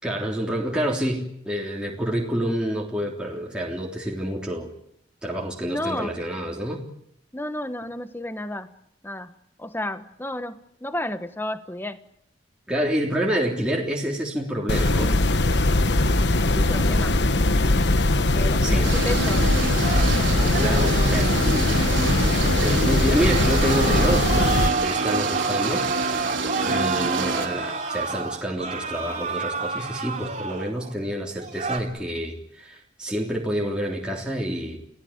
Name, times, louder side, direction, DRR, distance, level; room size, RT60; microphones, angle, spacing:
voice 1, 0.0-4.7 5.2-6.8 12.7-15.1 18.6-18.9 20.6-21.8 22.6-25.8 26.6-34.8, equal, 5° right, -2 dB, 3.4 m, -28 dB
voice 2, 5.6-6.1 7.3-8.7 9.0-9.3 9.6-12.0 15.8-16.1 16.4-17.2 18.2-19.5 26.6-26.9, left 1 dB, 10° left, 10 dB, 1.2 m, -32 dB
sound 1, 14.7-24.7, left 2 dB, 65° left, 1.2 m, -20 dB
sound 2, 18.8-27.5, right 4 dB, 90° right, 3.5 m, -28 dB
sound 3, 19.8-22.6 23.1-30.9 31.3-31.8, right 4 dB, 40° right, 2.9 m, -29 dB
29.5 x 17.5 x 8.8 m, 0.73 s
head